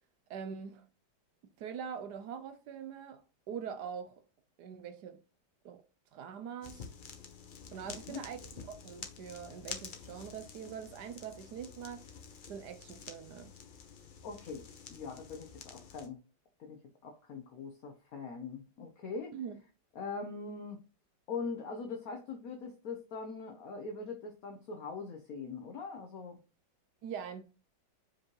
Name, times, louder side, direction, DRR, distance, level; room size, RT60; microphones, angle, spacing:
voice 1, 0.3-0.8 1.6-3.2 3.5-4.2 4.6-5.2 5.6-5.8 6.1-6.9 7.7-8.4 8.7-12.0 12.5-13.5 19.3-19.6 27.0-27.4, right 7 dB, 70° right, 1.1 m, -43 dB
sound 1, 6.6-16.1, left 6 dB, 85° left, 0.4 m, -49 dB
voice 2, 14.2-16.2 16.6-19.3 20.0-20.8 21.3-26.4, left 4 dB, 60° left, 1.1 m, -42 dB
6.0 x 5.0 x 3.1 m
omnidirectional pair, 2.0 m